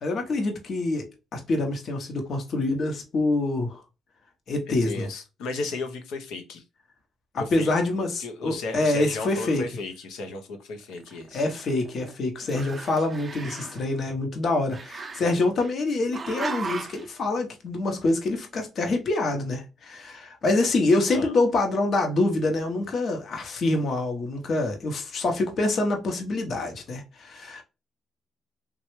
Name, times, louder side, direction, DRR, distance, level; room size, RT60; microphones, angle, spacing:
voice 1, 0.0-3.8 4.5-5.1 7.3-9.6 11.3-27.6, left 2 dB, 55° left, 0.9 m, -26 dB
voice 2, 4.7-6.6 7.4-7.8 8.2-11.5 21.1-21.3, left 3 dB, 90° left, 0.7 m, -35 dB
Growling, 10.9-12.1 12.4-13.8 14.7-15.7 16.1-17.1, right 4 dB, 35° right, 0.4 m, -37 dB
3.2 x 2.3 x 3.0 m
cardioid pair, 90°, 0 cm